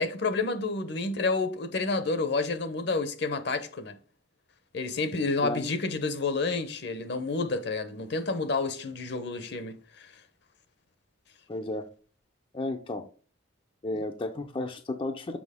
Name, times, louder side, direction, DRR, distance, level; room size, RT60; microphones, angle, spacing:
voice 1, 0.0-3.9 4.7-10.1, left 3 dB, 60° left, 0.8 m, -29 dB
voice 2, 11.5-11.9 12.5-13.0 13.8-15.4, left 2 dB, 25° left, 0.5 m, -33 dB
6.2 x 5.9 x 3.6 m
head